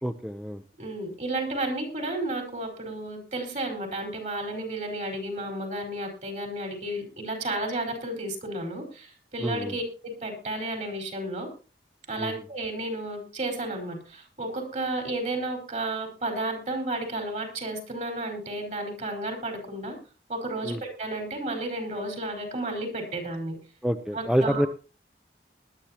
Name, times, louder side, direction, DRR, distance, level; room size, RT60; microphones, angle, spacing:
voice 1, 0.0-0.6 9.4-9.8 12.2-12.4 20.6-20.8 23.8-24.7, equal, 5° right, 7 dB, 0.6 m, -27 dB
voice 2, 0.8-11.5 12.1-20.0 20.3-23.6 24.1-24.6, right 2 dB, 45° right, 3 dB, 4.6 m, -32 dB
20.0 x 11.5 x 2.9 m, 0.34 s
head